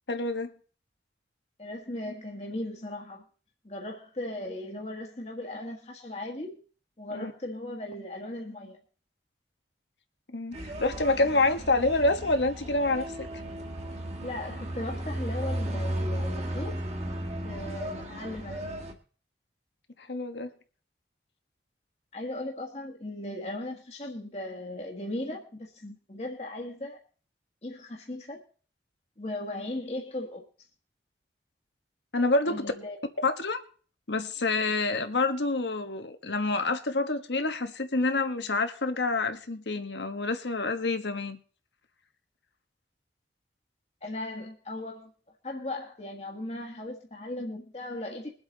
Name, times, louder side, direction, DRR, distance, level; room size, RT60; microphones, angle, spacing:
voice 1, 0.1-0.5 7.1-7.3 10.3-13.3 20.0-20.5 32.1-32.7 33.2-33.6 34.1-41.4, left 2 dB, 80° left, 1.4 m, -27 dB
voice 2, 1.6-3.2 3.6-6.6 7.0-8.8 14.2-16.8 17.0-17.1 17.4-18.6 22.1-27.0 27.6-28.4 29.2-30.4 32.5-33.0 44.0-45.1 45.4-48.3, left 1 dB, 35° left, 1.5 m, -37 dB
sound 1, 10.5-18.9, right 1 dB, 40° right, 1.9 m, -35 dB
22.0 x 8.0 x 4.0 m
head